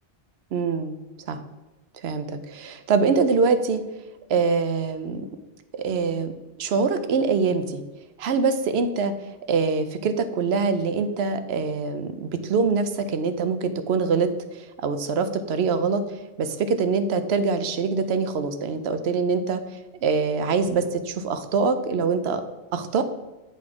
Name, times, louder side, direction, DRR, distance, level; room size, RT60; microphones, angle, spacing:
voice 1, 0.5-1.0 1.3-1.4 2.0-3.8 4.3-5.3 5.8-6.3 6.6-7.8 8.2-19.6 20.0-22.4 22.7-23.0, right 5 dB, 80° right, 10 dB, 0.9 m, -24 dB
7.8 x 4.2 x 4.7 m, 1.2 s
omnidirectional pair, 1.1 m